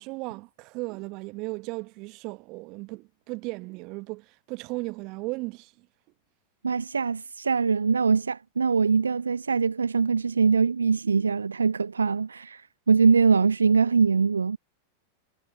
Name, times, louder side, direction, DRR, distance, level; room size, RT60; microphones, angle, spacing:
voice 1, 0.0-5.9, right 25 dB, 40° right, 2.2 m, -36 dB
voice 2, 6.6-12.6 12.9-14.6, right 5 dB, 75° right, 0.9 m, -22 dB
figure-of-eight pair, 90°, 0 cm